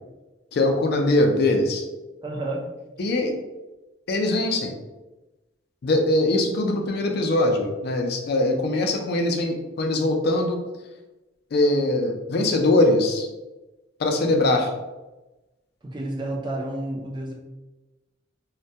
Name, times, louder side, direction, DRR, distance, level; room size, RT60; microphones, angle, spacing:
voice 1, 0.5-1.8 3.0-3.4 4.1-4.7 5.8-10.6 11.5-13.3 14.0-14.7, left 2 dB, 55° left, 3 dB, 0.4 m, -22 dB
voice 2, 2.2-2.6 15.8-17.3, right 1 dB, 25° right, -2 dB, 0.4 m, -30 dB
2.2 x 2.1 x 2.7 m, 1.1 s
head